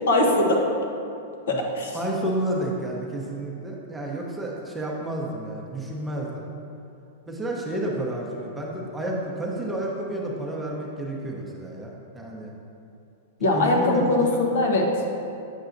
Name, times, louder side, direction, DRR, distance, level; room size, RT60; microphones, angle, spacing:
voice 1, 0.1-0.6 1.5-2.0 13.4-15.0, left 2 dB, 80° left, 0 dB, 1.0 m, -21 dB
voice 2, 1.5-6.5 7.3-12.5 13.4-14.4, right 1 dB, 5° right, -3 dB, 0.7 m, -31 dB
8.0 x 5.5 x 2.5 m, 2.6 s
supercardioid pair, 145°, 0 cm